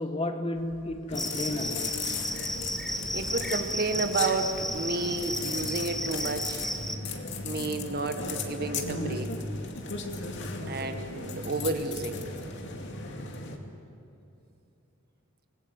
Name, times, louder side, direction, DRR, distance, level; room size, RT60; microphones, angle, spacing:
voice 1, 0.0-2.0, left 1 dB, 30° left, 1.4 m, -33 dB
sound 1, 0.5-13.3, equal, 80° left, 3.5 m, -53 dB
sound 2, 1.1-13.6, left 3 dB, 60° left, 2.5 m, -36 dB
Cricket, 1.2-7.0, equal, ahead, 1.3 m, -34 dB
voice 2, 3.1-6.7 7.4-9.4 10.7-12.3, right 3 dB, 50° right, 1.7 m, -31 dB
27.0 x 20.5 x 8.1 m
head